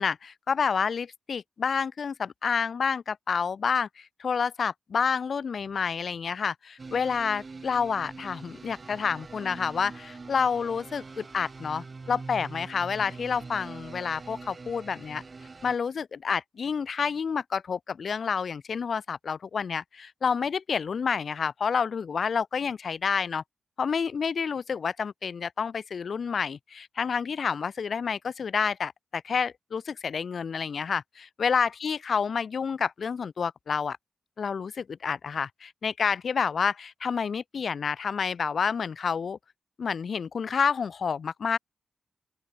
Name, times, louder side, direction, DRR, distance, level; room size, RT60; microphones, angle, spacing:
voice 1, 0.0-15.2 15.6-23.4 23.8-34.0 34.4-39.4 39.8-41.6, left 6 dB, 65° left, 0.3 m, -29 dB
sound 1, 6.8-15.8, right 4 dB, 40° right, 2.6 m, -44 dB
open air
cardioid pair, 80°, 0 cm